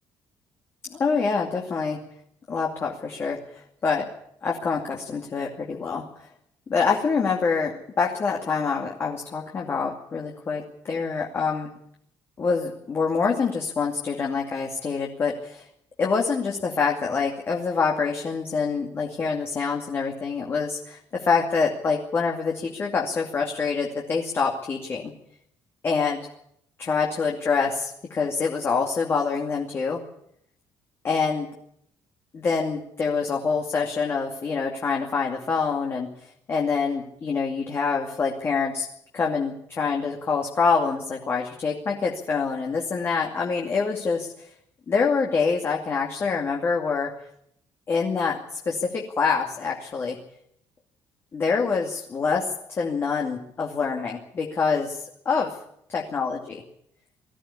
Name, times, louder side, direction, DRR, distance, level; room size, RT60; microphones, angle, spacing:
voice 1, 0.9-2.0 2.5-4.1 4.4-6.3 6.7-11.7 12.4-15.6 16.0-25.0 25.8-26.2 26.8-30.0 31.0-31.5 32.3-38.9 39.1-44.5 44.9-47.1 47.9-50.2 51.3-55.5 55.9-56.6, left 5 dB, 30° left, 0 dB, 2.5 m, -26 dB
20.0 x 15.0 x 10.0 m, 0.73 s
cardioid pair, 165°, 8 cm